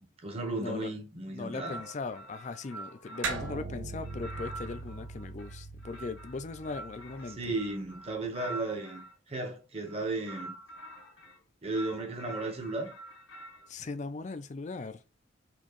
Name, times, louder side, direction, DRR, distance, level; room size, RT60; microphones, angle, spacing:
voice 1, 0.0-1.8 7.4-10.6 11.6-12.9, right 2 dB, 30° right, 1.1 m, -35 dB
voice 2, 0.6-0.9 1.3-7.5 13.7-15.0, left 3 dB, 35° left, 0.4 m, -39 dB
sound 1, 1.5-3.6 4.0-9.1 9.8-11.4 11.7-13.7, right 1 dB, 75° left, 1.0 m, -46 dB
sound 2, 3.2-8.0, right 3 dB, 80° right, 0.8 m, -40 dB
4.4 x 2.9 x 3.0 m
head